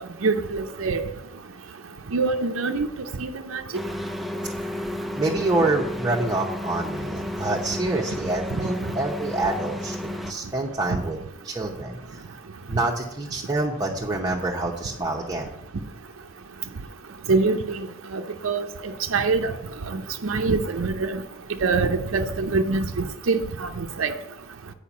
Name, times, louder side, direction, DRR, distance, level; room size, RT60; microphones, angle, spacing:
voice 1, 0.2-1.0 2.1-2.9 3.2-3.6 17.3-17.8 18.1-18.6 19.1-19.5 19.9-21.2 21.6-22.8 23.3-24.1, right 4 dB, 75° right, 5 dB, 0.6 m, -24 dB
sound 1, 3.7-10.3, left 1 dB, ahead, 0.4 m, -32 dB
voice 2, 5.2-11.2 11.4-12.2 12.7-15.5, right 2 dB, 20° right, -1 dB, 0.8 m, -27 dB
8.5 x 5.0 x 7.2 m, 0.85 s
head